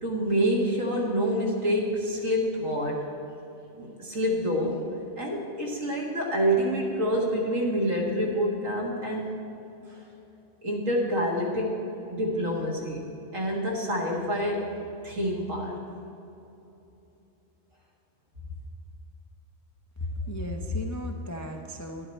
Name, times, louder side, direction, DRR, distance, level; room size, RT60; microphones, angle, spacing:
voice 1, 0.0-3.0 3.8-4.8 5.2-9.3 10.6-11.7 12.1-13.0 13.3-14.7 15.0-15.8, equal, 85° right, -2 dB, 2.1 m, -27 dB
voice 2, 20.0-22.1, left 1 dB, 25° left, 2 dB, 0.4 m, -33 dB
11.0 x 10.5 x 4.4 m, 2.9 s
omnidirectional pair, 1.3 m